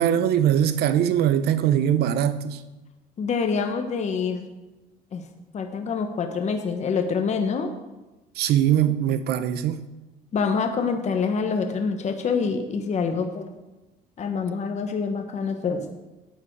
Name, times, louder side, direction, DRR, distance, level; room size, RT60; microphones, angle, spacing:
voice 1, 0.0-2.6 8.4-9.8, right 10 dB, 70° right, 0.8 m, -21 dB
voice 2, 3.2-4.5 5.1-5.2 5.5-7.7 10.3-13.5 14.2-15.8, left 5 dB, 45° left, 1.2 m, -26 dB
13.0 x 9.0 x 4.7 m
cardioid pair, 110°, 17 cm